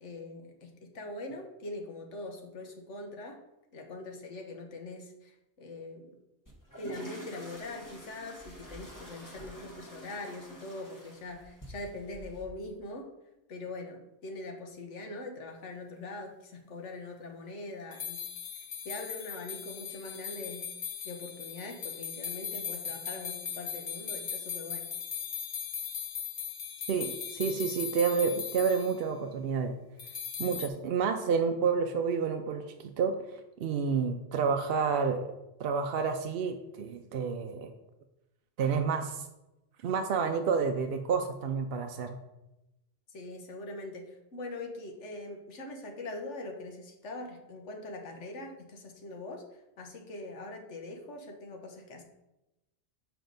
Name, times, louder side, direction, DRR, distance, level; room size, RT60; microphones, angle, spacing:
voice 1, 0.0-3.4 3.7-6.2 6.8-13.1 13.5-18.3 18.5-20.7 21.0-24.9 43.1-52.0, left 2 dB, 80° left, 3 dB, 1.3 m, -42 dB
sound 1, 6.5-12.5, right 1 dB, 15° left, 1.2 m, -48 dB
sound 2, 17.9-29.0 30.0-30.7, left 7 dB, 55° left, 0.9 m, -39 dB
voice 2, 26.9-29.7 30.4-35.3 35.6-37.7 38.6-39.2 39.8-42.2, right 6 dB, 65° right, 6 dB, 0.7 m, -29 dB
6.8 x 5.0 x 3.9 m, 0.96 s
omnidirectional pair, 1.2 m